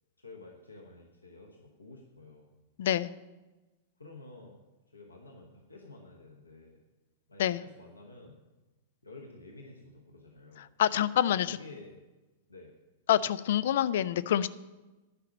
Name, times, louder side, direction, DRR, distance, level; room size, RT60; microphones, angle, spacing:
voice 1, 0.2-2.5 4.0-4.6 4.9-6.8 7.3-8.4 9.0-10.7 11.1-12.0 12.5-12.7, left 2 dB, 80° left, 0 dB, 1.3 m, -51 dB
voice 2, 2.8-3.1 7.4-7.6 10.8-11.6 13.1-14.5, left 11 dB, 55° left, 17 dB, 0.4 m, -26 dB
11.0 x 5.9 x 8.9 m, 1.1 s
figure-of-eight pair, 95°, 0 cm